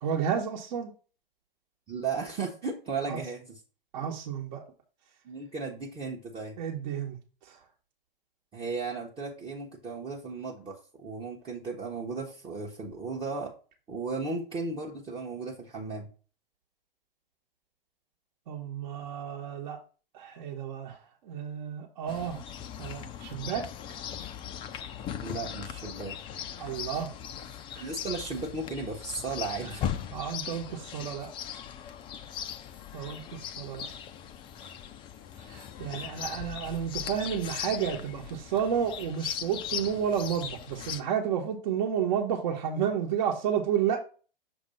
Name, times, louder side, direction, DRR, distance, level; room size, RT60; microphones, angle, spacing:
voice 1, 0.0-0.9 3.1-3.2 3.9-4.6 6.6-7.2 7.5-7.6 18.5-19.8 20.1-22.4 22.8-23.7 26.6-27.1 27.7-27.8 29.6-29.7 30.1-31.3 32.9-33.9 35.4-44.0, right 8 dB, 50° right, 1.1 m, -31 dB
voice 2, 1.9-3.4 5.2-6.6 8.5-13.5 13.9-16.1 25.2-26.1 27.8-29.8, right 4 dB, 20° right, 0.9 m, -35 dB
Chirp tweet, 22.1-41.0, left 9 dB, 15° left, 0.4 m, -39 dB
6.6 x 2.7 x 5.4 m
figure-of-eight pair, 105°, 29 cm